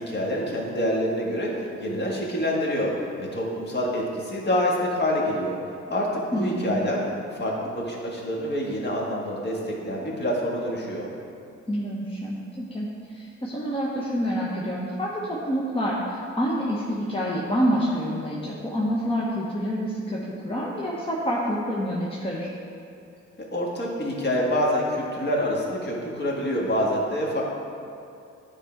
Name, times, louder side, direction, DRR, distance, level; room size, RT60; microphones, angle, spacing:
voice 1, 0.0-2.9 3.2-5.6 5.9-7.0 7.3-11.1 23.4-27.4, equal, 35° left, -3 dB, 1.7 m, -26 dB
voice 2, 6.3-6.8 11.7-22.5, equal, 20° left, -5 dB, 0.9 m, -27 dB
9.8 x 3.7 x 4.5 m, 2.5 s
cardioid pair, 90°, 30 cm